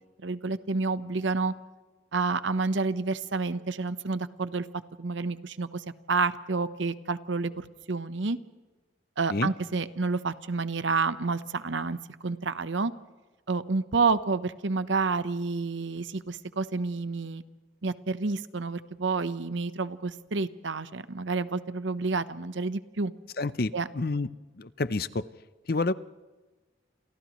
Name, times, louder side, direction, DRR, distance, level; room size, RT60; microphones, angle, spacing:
voice 1, 0.2-1.5 2.1-4.7 5.0-8.4 9.2-12.9 13.5-17.4 17.8-23.1 23.7-23.9, right 4 dB, 80° right, 13 dB, 1.0 m, -29 dB
voice 2, 23.4-24.3 24.6-25.2 25.7-25.9, left 3 dB, 50° left, 15 dB, 0.6 m, -28 dB
30.0 x 28.0 x 3.2 m, 1.2 s
head